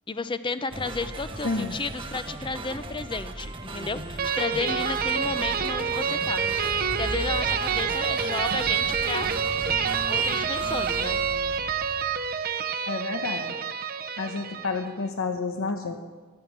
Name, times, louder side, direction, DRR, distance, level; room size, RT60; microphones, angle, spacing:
voice 1, 0.1-6.5 7.0-9.3 10.1-11.2, left 4 dB, 25° left, 12 dB, 0.6 m, -32 dB
sound 1, 0.7-12.3, right 2 dB, 25° right, 1.0 m, -38 dB
Car / Engine, 4.1-12.5, equal, 5° right, 5.7 m, -41 dB
sound 2, 4.2-14.9, right 7 dB, 45° right, 0.7 m, -27 dB
voice 2, 12.9-13.5 14.2-16.1, left 3 dB, 75° left, 6 dB, 1.0 m, -30 dB
15.0 x 11.0 x 7.4 m, 1.4 s
head